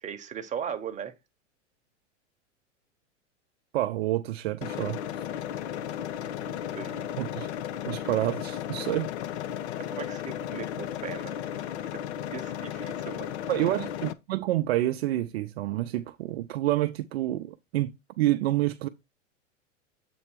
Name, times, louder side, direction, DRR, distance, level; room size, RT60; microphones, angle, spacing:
voice 1, 0.0-1.1 6.3-7.1 9.9-11.4 12.3-13.4, right 8 dB, 20° right, 0.9 m, -38 dB
voice 2, 3.7-5.0 7.2-7.5 7.9-9.1 13.5-18.9, right 15 dB, 55° right, 0.6 m, -28 dB
sound 1, 4.6-14.1, left 10 dB, 60° left, 0.7 m, -35 dB
7.7 x 3.3 x 4.6 m
figure-of-eight pair, 95°, 38 cm